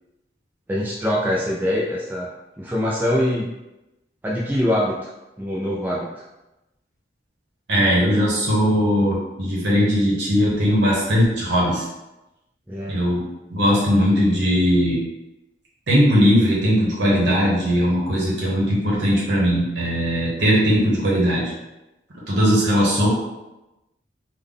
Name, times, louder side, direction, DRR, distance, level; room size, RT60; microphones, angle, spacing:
voice 1, 0.7-2.3 2.6-3.5 4.2-5.1 5.4-6.1 12.7-13.0, left 1 dB, 10° right, -4 dB, 0.3 m, -23 dB
voice 2, 7.7-11.9 12.9-13.2 13.5-15.0 15.9-21.5 22.3-23.1, equal, 80° right, -5 dB, 0.9 m, -19 dB
3.5 x 2.2 x 3.6 m, 0.98 s
head